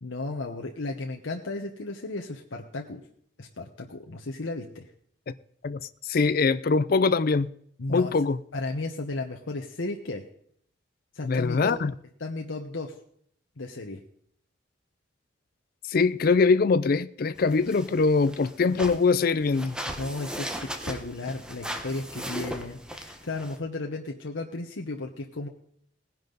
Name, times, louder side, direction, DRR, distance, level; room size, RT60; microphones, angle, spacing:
voice 1, 0.0-3.0 3.4-4.9 7.8-8.1 8.5-10.2 11.1-11.8 12.2-12.9 13.6-14.0 19.9-20.5 20.9-25.5, left 2 dB, 85° left, 1.1 m, -34 dB
voice 2, 5.6-7.5 7.9-8.4 11.2-11.9 15.9-19.8, left 4 dB, 50° left, 0.4 m, -23 dB
sound 1, 17.4-23.6, equal, 5° right, 1.1 m, -38 dB
18.5 x 10.5 x 4.0 m
head